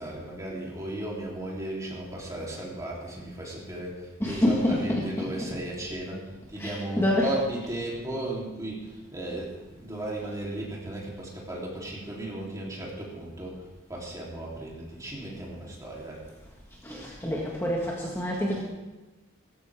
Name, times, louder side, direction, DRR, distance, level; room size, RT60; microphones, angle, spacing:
voice 1, 0.0-16.3, right 1 dB, 15° right, -4 dB, 3.6 m, -35 dB
voice 2, 4.2-5.3 6.6-7.3 16.8-18.6, left 1 dB, 10° left, -4 dB, 1.8 m, -27 dB
17.0 x 15.0 x 3.7 m, 1.1 s
head